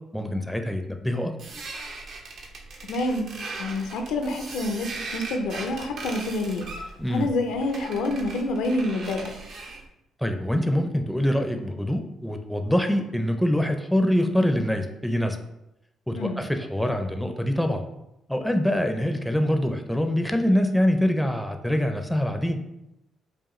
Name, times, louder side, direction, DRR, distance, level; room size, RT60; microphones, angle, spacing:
voice 1, 0.1-1.3 7.0-7.3 10.2-15.4 16.1-17.8 18.3-22.6, equal, ahead, 5 dB, 0.4 m, -24 dB
sound 1, 1.4-9.9, right 3 dB, 70° right, 0.7 m, -39 dB
voice 2, 2.9-3.3 3.6-6.7 7.1-9.3 16.2-16.4, left 2 dB, 90° left, 5 dB, 0.5 m, -27 dB
4.8 x 2.4 x 3.1 m, 0.87 s
cardioid pair, 90°, 0 cm